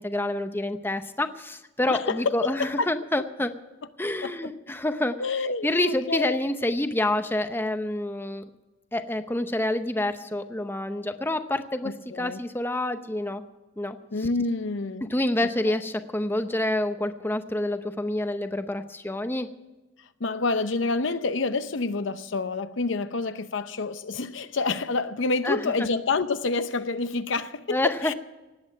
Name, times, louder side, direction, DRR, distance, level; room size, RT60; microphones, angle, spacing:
voice 1, 0.0-3.5 4.0-5.2 5.6-8.4 8.9-13.4 13.8-14.0 15.1-19.5 25.4-25.7 27.7-28.1, left 1 dB, 10° left, 0.7 m, -27 dB
voice 2, 1.8-2.9 4.0-4.5 5.2-6.4 11.8-12.4 14.1-15.1 15.7-15.8 20.2-28.1, left 3 dB, 70° left, 0.7 m, -28 dB
18.5 x 8.6 x 7.5 m
head